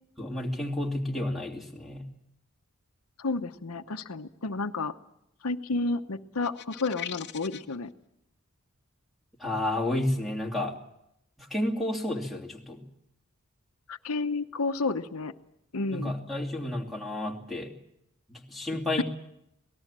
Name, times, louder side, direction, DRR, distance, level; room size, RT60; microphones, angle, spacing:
voice 1, 0.2-2.0 9.4-10.8 11.4-12.8 15.9-17.7 18.3-19.0, left 1 dB, ahead, 2 dB, 2.7 m, -31 dB
voice 2, 3.2-4.9 5.4-7.9 13.9-15.3 15.7-16.1, left 3 dB, 80° left, 8 dB, 1.0 m, -31 dB
wicked high, 6.4-7.8, left 10 dB, 55° left, 0.9 m, -40 dB
25.5 x 19.0 x 7.5 m, 0.80 s
head